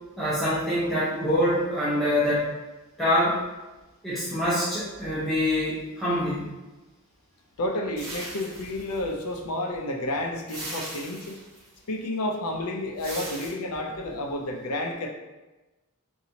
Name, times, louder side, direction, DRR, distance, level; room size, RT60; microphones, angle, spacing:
voice 1, 0.2-2.5 3.0-3.4 4.0-6.5, left 1 dB, ahead, -12 dB, 0.8 m, -25 dB
voice 2, 7.6-11.4 11.9-15.1, left 1 dB, 80° left, 2 dB, 0.6 m, -30 dB
sound 1, 8.0-9.4 10.5-11.7 13.0-13.5, right 1 dB, 75° right, 1.3 m, -39 dB
3.9 x 2.7 x 2.8 m, 1.1 s
head